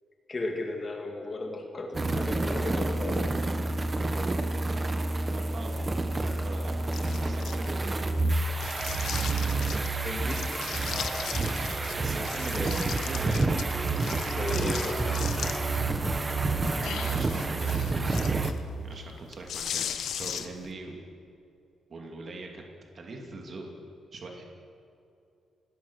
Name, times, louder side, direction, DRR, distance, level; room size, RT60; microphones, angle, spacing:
voice 1, 0.3-3.2 6.3-6.4 9.9-10.4 12.5-12.8 14.3-15.4, left 2 dB, 25° left, 2 dB, 2.2 m, -35 dB
sound 1, 1.9-18.5, right 3 dB, 20° right, 1.1 m, -29 dB
voice 2, 5.3-5.7 6.2-8.1 10.9-11.1 11.9-13.5 14.5-14.7 16.8-18.4 18.8-21.0 21.9-22.6 22.9-23.7 24.1-24.4, right 3 dB, 35° right, 1 dB, 2.7 m, -41 dB
sound 2, 6.9-8.0 8.6-9.9 10.3-11.9 12.2-15.8 16.2-20.7, left 8 dB, 65° left, 1.2 m, -38 dB
27.0 x 20.0 x 6.4 m, 2.6 s
wide cardioid pair, 170°, 0 cm